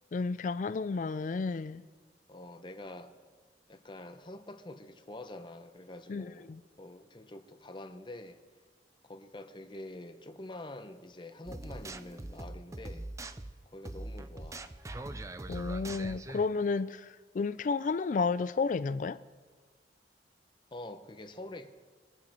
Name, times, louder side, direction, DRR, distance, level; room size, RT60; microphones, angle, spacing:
voice 1, 0.1-1.8 6.1-6.6 15.5-17.1 17.3-19.2, left 4 dB, 45° left, 0.4 m, -32 dB
voice 2, 2.3-3.1 3.7-8.4 9.0-13.1 13.7-14.7 20.7-21.7, left 1 dB, 25° left, 0.8 m, -46 dB
sound 1, 11.5-16.5, right 2 dB, 20° right, 0.5 m, -42 dB
22.0 x 9.0 x 4.4 m
head